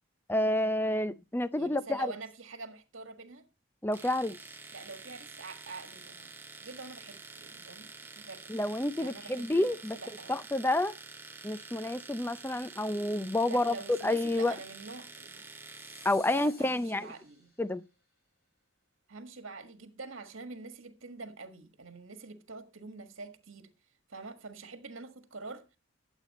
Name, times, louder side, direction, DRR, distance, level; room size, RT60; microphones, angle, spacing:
voice 1, 0.3-2.1 3.8-4.4 8.5-10.0 10.3-10.9 11.4-14.6 16.0-17.1 17.6-17.8, left 1 dB, 10° left, 0.5 m, -29 dB
voice 2, 1.5-3.5 4.7-8.5 9.0-10.5 13.4-15.5 16.2-17.5 19.1-23.7 24.1-25.8, right 3 dB, 70° right, 1.6 m, -46 dB
Domestic sounds home sounds, 3.9-16.2, right 3 dB, 10° right, 0.9 m, -48 dB
sound 1, 15.4-17.8, left 2 dB, 50° left, 6.8 m, -55 dB
13.0 x 8.2 x 4.1 m
head